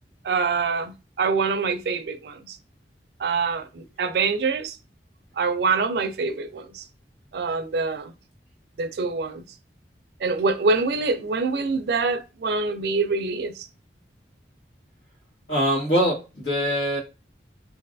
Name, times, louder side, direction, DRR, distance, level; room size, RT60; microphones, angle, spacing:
voice 1, 0.2-2.6 3.2-4.8 5.4-6.8 7.3-8.1 8.8-9.4 10.2-13.7, right 4 dB, 65° right, 0.4 m, -25 dB
voice 2, 15.5-17.0, equal, 90° left, 1.3 m, -23 dB
3.1 x 2.5 x 2.5 m
head